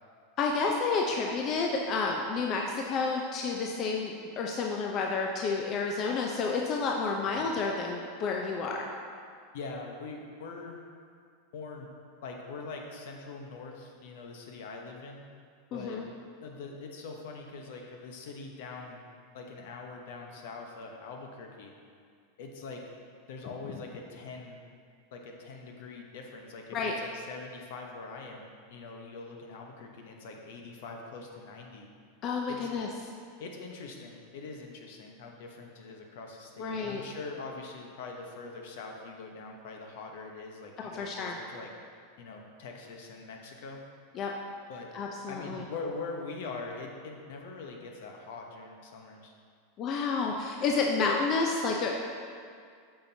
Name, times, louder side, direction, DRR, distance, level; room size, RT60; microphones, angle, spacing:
voice 1, 0.4-8.9 15.7-16.0 26.7-26.9 32.2-32.9 36.6-37.0 40.8-41.4 44.2-44.3 44.9-45.6 49.8-51.9, left 4 dB, 40° left, 0 dB, 0.6 m, -30 dB
voice 2, 9.5-10.8 11.5-11.9 12.2-15.2 15.7-16.0 16.4-19.0 19.3-21.7 22.4-22.8 23.3-24.6 25.1-31.9 32.5-32.7 33.4-41.7 42.2-43.8 44.7-44.9 45.3-49.3, left 3 dB, 70° left, 2 dB, 1.0 m, -43 dB
8.6 x 5.7 x 2.8 m, 2.2 s
hypercardioid pair, 100°, 0 cm